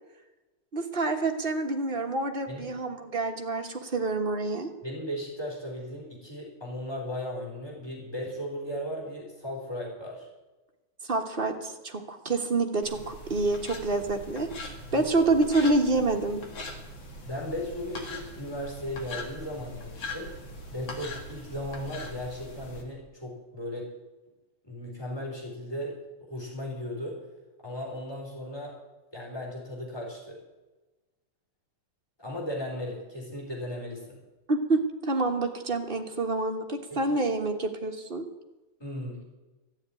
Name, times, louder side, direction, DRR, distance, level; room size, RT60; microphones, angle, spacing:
voice 1, 0.7-4.7 11.1-14.5 14.9-16.4 34.5-38.2, right 2 dB, 30° right, 3 dB, 1.3 m, -27 dB
voice 2, 2.5-2.8 4.8-10.3 14.8-15.1 17.2-20.3 20.7-23.9 24.6-27.2 27.6-28.8 29.1-30.4 32.2-34.2 36.9-37.2 38.8-39.2, left 1 dB, 10° left, -3 dB, 4.2 m, -36 dB
sound 1, 12.8-22.8, left 1 dB, 65° left, 2.9 m, -41 dB
14.5 x 7.3 x 9.8 m, 1.1 s
omnidirectional pair, 2.3 m